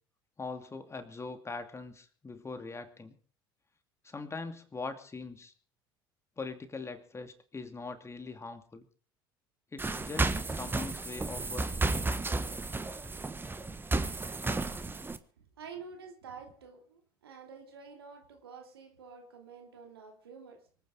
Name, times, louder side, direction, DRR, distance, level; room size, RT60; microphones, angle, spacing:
voice 1, 0.4-3.2 4.0-5.5 6.4-8.9 9.7-11.9, left 3 dB, 20° left, 7 dB, 2.5 m, -42 dB
sound 1, 9.8-15.2, right 3 dB, 15° right, 1.4 m, -33 dB
voice 2, 15.6-20.6, right 5 dB, 90° right, 3 dB, 2.9 m, -49 dB
24.5 x 9.2 x 5.0 m, 0.42 s
hypercardioid pair, 70°, 13 cm